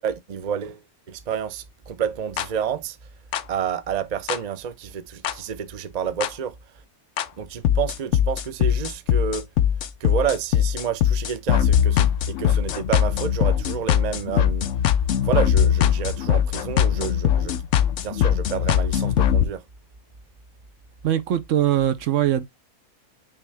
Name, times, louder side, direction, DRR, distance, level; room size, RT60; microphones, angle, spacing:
voice 1, 0.0-3.0 3.5-6.5 7.4-9.5 10.0-14.7 15.2-17.6 18.0-19.6, right 8 dB, 80° right, 0.3 m, -29 dB
sound 1, 2.4-2.5 3.3-3.4 4.3-4.4 5.2-5.3 6.2-6.3 7.2-7.3 7.6-19.4, left 10 dB, 65° left, 0.8 m, -21 dB
voice 2, 21.0-22.4, right 11 dB, 60° right, 0.9 m, -21 dB
8.8 x 3.2 x 3.3 m
omnidirectional pair, 1.7 m